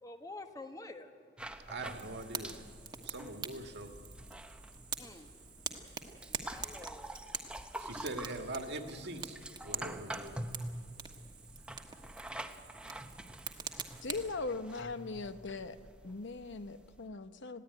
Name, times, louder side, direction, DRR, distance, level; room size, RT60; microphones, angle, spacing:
voice 1, 0.0-1.1 5.0-5.3 6.3-7.2, left 2 dB, 15° left, 6 dB, 1.2 m, -48 dB
sound 1, 1.4-17.1, right 1 dB, 5° right, 0.9 m, -47 dB
voice 2, 1.7-2.5 3.0-3.9 7.8-9.4 9.6-10.4, right 2 dB, 60° right, 5 dB, 1.8 m, -42 dB
Fire, 1.8-14.3, right 5 dB, 20° right, 1.4 m, -45 dB
voice 3, 14.0-15.8 16.0-17.6, left 3 dB, 60° left, 10 dB, 0.9 m, -40 dB
20.5 x 16.0 x 9.6 m, 2.2 s
head